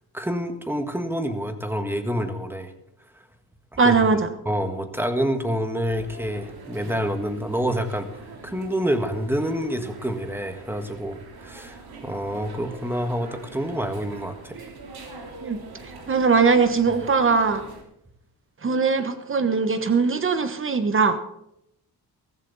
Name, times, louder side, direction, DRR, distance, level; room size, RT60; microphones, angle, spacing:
voice 1, 0.1-2.7 3.7-4.0 4.4-8.1 8.4-14.7, equal, 5° right, 7 dB, 1.6 m, -27 dB
voice 2, 3.8-4.3 15.4-17.6 18.6-21.2, right 4 dB, 35° right, 10 dB, 1.2 m, -21 dB
sound 1, 5.9-17.8, right 4 dB, 70° right, 3.3 m, -43 dB
15.0 x 14.5 x 4.1 m, 0.80 s
cardioid pair, 125°, 38 cm